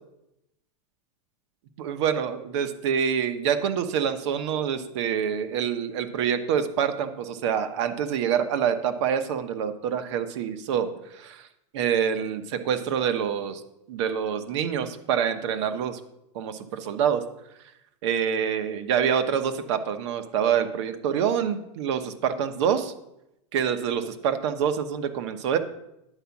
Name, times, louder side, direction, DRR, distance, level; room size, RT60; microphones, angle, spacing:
voice 1, 1.8-11.5 11.7-13.6 13.9-16.0 16.3-17.2 18.0-22.9 23.5-25.6, right 8 dB, 55° right, 9 dB, 1.0 m, -26 dB
10.0 x 5.0 x 7.1 m, 0.85 s
supercardioid pair, 165°, 18 cm